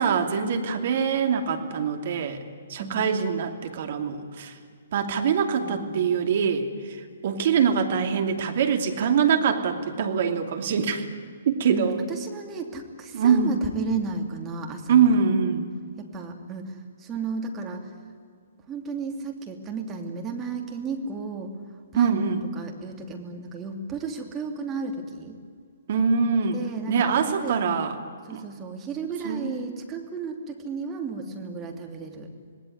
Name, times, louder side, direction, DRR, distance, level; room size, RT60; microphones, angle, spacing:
voice 1, 0.0-2.4 2.7-4.5 4.9-7.0 7.2-11.0 11.5-12.0 13.1-13.5 14.9-15.7 21.9-22.4 25.9-26.6 26.9-28.0 28.3-28.4 29.2-29.5, right 6 dB, 55° right, 5 dB, 2.7 m, -23 dB
voice 2, 5.6-6.2 11.7-15.1 16.0-17.9 18.7-21.5 21.9-25.4 26.5-27.6 28.3-32.3, right 4 dB, 20° right, 2 dB, 3.1 m, -34 dB
26.5 x 19.0 x 9.7 m, 2.1 s
figure-of-eight pair, 125°, 0 cm